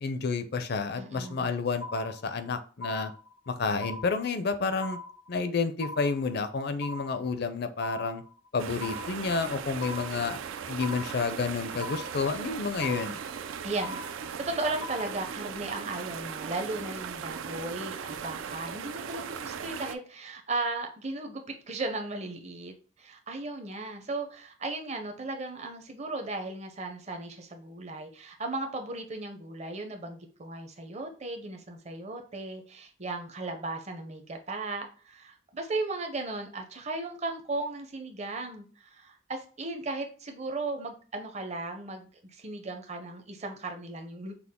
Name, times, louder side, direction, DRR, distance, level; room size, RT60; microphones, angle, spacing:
voice 1, 0.0-3.1 3.5-5.0 5.3-8.2 8.5-10.4 10.7-13.2, left 4 dB, 55° left, 10 dB, 0.5 m, -30 dB
voice 2, 1.0-1.5 13.6-14.0 14.4-44.4, right 2 dB, 35° right, 5 dB, 0.7 m, -36 dB
sound 1, 1.2-1.5 1.8-2.5 2.8-3.5 3.8-4.5 4.8-5.5 5.8-6.5 6.8-7.5 7.8-8.5 8.8-9.5 9.8-10.5 10.8-11.5 11.8-12.5 12.8-13.5 13.8-14.5 14.8-15.5, left 2 dB, 85° left, 0.9 m, -41 dB
sound 2, 8.6-20.0, right 7 dB, 80° right, 0.4 m, -38 dB
5.9 x 2.1 x 3.6 m, 0.39 s
head